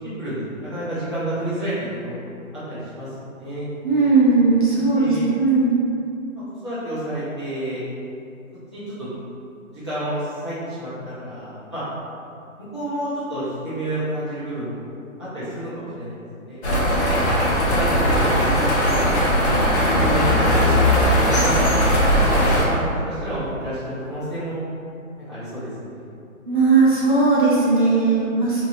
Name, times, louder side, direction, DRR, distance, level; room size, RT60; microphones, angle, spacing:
voice 1, 0.0-1.7 2.0-3.7 4.7-5.3 6.3-7.8 8.7-9.2 9.7-10.9 11.2-11.8 12.7-14.9 15.2-16.6 17.6-19.0 20.0-21.8 22.6-24.6 25.3-26.1, right 1 dB, 20° left, -14 dB, 0.5 m, -30 dB
voice 2, 3.8-5.8 26.5-28.6, right 3 dB, 40° right, -7 dB, 0.7 m, -17 dB
sound 1, 16.6-22.6, equal, 55° left, 0.8 m, -18 dB
2.9 x 2.6 x 2.8 m, 2.5 s
hypercardioid pair, 165°, 41 cm